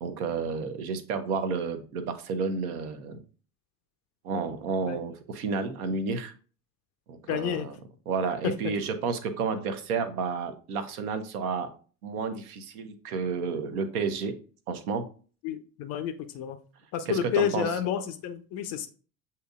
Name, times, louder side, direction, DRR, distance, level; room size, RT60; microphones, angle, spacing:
voice 1, 0.0-3.2 4.2-6.3 7.1-7.7 8.1-11.7 12.0-14.3 14.7-15.0 17.1-17.7, right 5 dB, 60° right, 9 dB, 0.8 m, -31 dB
voice 2, 7.3-7.7 8.4-8.5 15.4-16.6 16.9-18.9, left 9 dB, 35° left, 8 dB, 0.4 m, -30 dB
7.5 x 2.8 x 2.4 m, 0.39 s
figure-of-eight pair, 65°, 49 cm